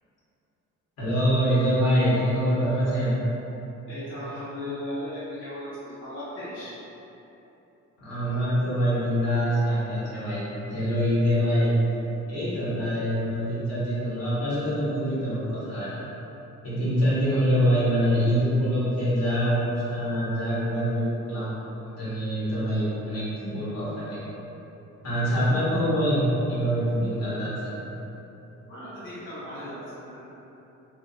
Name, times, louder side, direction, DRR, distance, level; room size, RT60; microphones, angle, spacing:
voice 1, 1.0-3.1 8.0-11.7 12.3-16.0 16.6-21.5 22.0-24.2 25.0-26.2 26.5-27.7, equal, 55° left, -10 dB, 1.3 m, -25 dB
voice 2, 3.9-6.8 28.7-30.2, left 1 dB, 40° left, -13 dB, 1.0 m, -37 dB
2.8 x 2.8 x 2.7 m, 3.0 s
cardioid pair, 90°, 30 cm